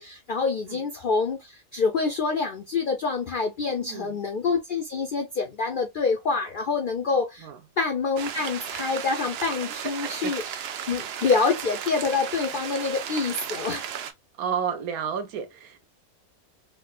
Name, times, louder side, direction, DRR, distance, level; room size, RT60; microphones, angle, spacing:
voice 1, 0.0-7.5 7.8-10.6 10.9-13.9, left 4 dB, 70° left, 0.4 m, -26 dB
voice 2, 3.6-4.2 7.4-7.6 9.8-10.3 11.2-11.3 14.4-15.8, right 7 dB, 85° right, 1.2 m, -32 dB
sound 1, 8.2-14.1, right 9 dB, 70° right, 0.6 m, -35 dB
4.5 x 2.1 x 2.3 m
omnidirectional pair, 1.5 m